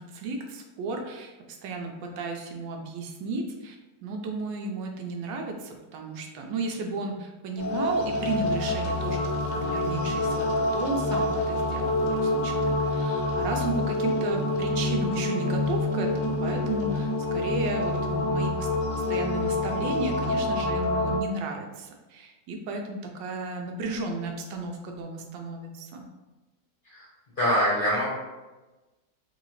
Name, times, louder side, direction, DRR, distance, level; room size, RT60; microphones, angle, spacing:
voice 1, 0.0-3.8 4.0-26.1, right 3 dB, 80° right, 3 dB, 1.2 m, -34 dB
sound 1, 7.6-21.2, left 2 dB, 80° left, 1.3 m, -27 dB
voice 2, 27.4-28.1, equal, 35° left, -7 dB, 0.9 m, -23 dB
3.9 x 2.7 x 3.0 m, 1.1 s
omnidirectional pair, 1.9 m